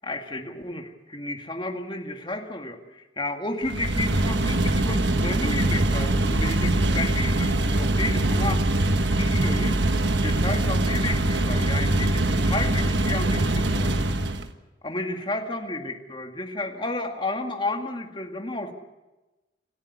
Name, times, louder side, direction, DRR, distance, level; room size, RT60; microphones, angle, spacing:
voice 1, 0.0-9.8 10.2-14.1 14.8-18.7, left 2 dB, 25° left, 3 dB, 2.1 m, -32 dB
sound 1, 3.6-14.5, right 1 dB, 80° right, 1.4 m, -23 dB
27.5 x 14.5 x 8.3 m, 1.1 s
head